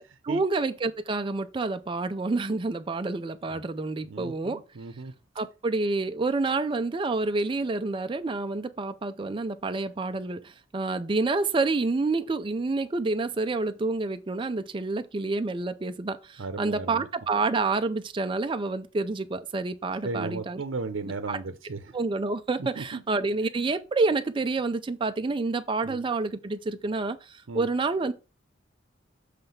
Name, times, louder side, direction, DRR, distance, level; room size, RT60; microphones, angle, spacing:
voice 1, 0.0-4.6 5.4-20.6 21.3-21.4 21.9-28.1, right 3 dB, 25° right, 0.4 m, -28 dB
voice 2, 4.0-5.1 16.4-17.1 20.0-21.8 22.8-23.0 25.8-26.0 27.5-27.7, right 3 dB, 80° right, 0.7 m, -35 dB
7.5 x 3.3 x 5.6 m
head